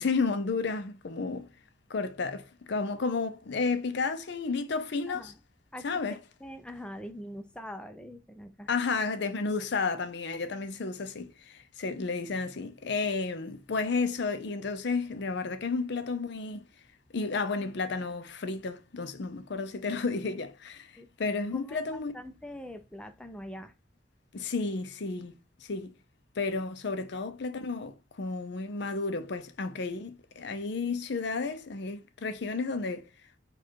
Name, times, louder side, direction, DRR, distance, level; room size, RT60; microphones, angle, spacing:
voice 1, 0.0-1.5 1.9-5.3 5.8-6.2 8.7-16.7 17.1-22.1 24.3-25.3 25.6-25.9 26.4-33.1, left 4 dB, 65° left, 0.6 m, -32 dB
voice 2, 5.1-5.4 5.7-8.7 21.0-21.1 21.5-23.7, equal, 5° left, 0.5 m, -44 dB
4.7 x 2.4 x 4.5 m
head